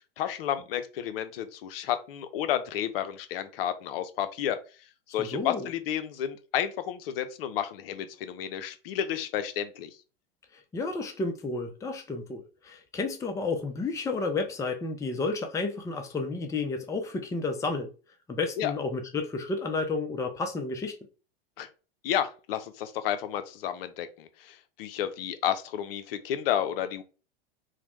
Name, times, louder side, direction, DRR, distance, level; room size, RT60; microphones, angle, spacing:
voice 1, 0.2-4.6 5.1-9.9 18.6-18.7 21.6-21.7 22.0-27.0, left 10 dB, 65° left, 0.6 m, -31 dB
voice 2, 5.2-5.7 10.5-17.9 18.3-21.0, left 3 dB, 10° left, 0.5 m, -31 dB
3.2 x 2.1 x 3.0 m
hypercardioid pair, 105°, 31 cm